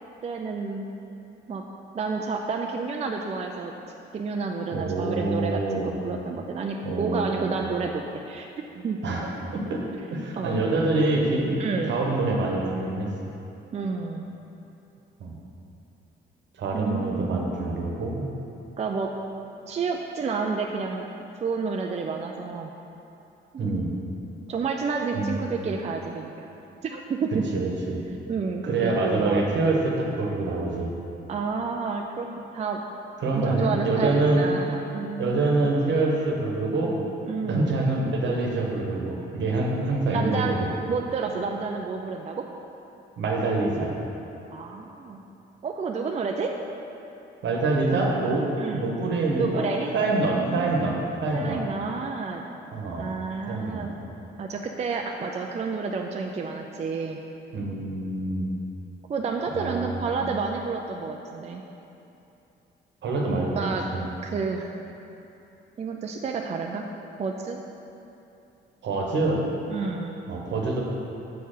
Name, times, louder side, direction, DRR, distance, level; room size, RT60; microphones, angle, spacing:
voice 1, 0.2-0.9 1.5-1.6 1.9-3.7 4.1-8.5 8.8-9.0 10.4-10.6 11.6-12.0 13.7-14.3 16.7-17.5 18.8-19.1 19.7-21.1 21.4-22.7 23.5-23.8 24.5-26.5 26.8-27.5 28.3-29.5 31.3-32.3 32.5-32.8 33.4-35.7 37.3-37.8 40.1-40.6 40.9-42.5 44.5-45.2 45.6-46.5 48.6-48.9 49.3-50.0 50.3-51.0 51.3-52.4 53.0-53.9 54.4-57.2 59.1-61.6 63.5-63.9 64.2-64.8 65.8-66.9 67.2-67.6 69.7-70.2, right 4 dB, 35° right, 2 dB, 0.4 m, -30 dB
voice 2, 4.7-5.9 6.8-7.6 9.0-9.8 10.1-13.1 15.2-15.3 16.6-18.2 23.6-23.9 25.2-25.4 27.5-28.0 28.6-30.9 33.2-34.5 35.2-36.9 37.4-40.7 43.2-43.9 47.4-49.7 49.9-51.6 52.7-53.1 53.5-53.9 57.5-58.5 59.5-60.0 63.0-64.1 68.8-69.4 70.3-70.8, right 2 dB, 65° right, -1 dB, 1.1 m, -26 dB
6.6 x 4.4 x 5.0 m, 2.9 s
cardioid pair, 90°, 20 cm